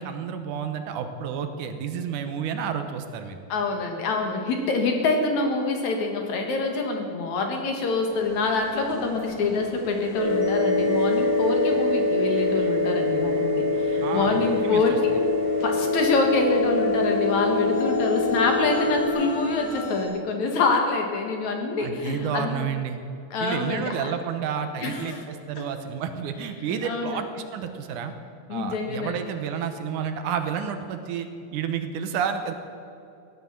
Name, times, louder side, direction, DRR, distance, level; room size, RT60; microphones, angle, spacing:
voice 1, 0.0-3.4 14.0-15.0 21.8-23.0 23.4-28.1 28.5-32.5, right 7 dB, 75° right, 7 dB, 2.3 m, -30 dB
voice 2, 3.5-15.1 15.6-22.7 23.3-24.1 24.8-25.2 25.6-25.7 26.8-27.2 28.5-29.2, left 3 dB, 65° left, 3 dB, 2.9 m, -26 dB
sound 1, 8.1-20.1, left 2 dB, 45° left, 4.3 m, -41 dB
sound 2, 10.2-19.1, left 3 dB, 40° right, 3.4 m, -24 dB
16.5 x 11.0 x 7.2 m, 2.6 s
omnidirectional pair, 3.8 m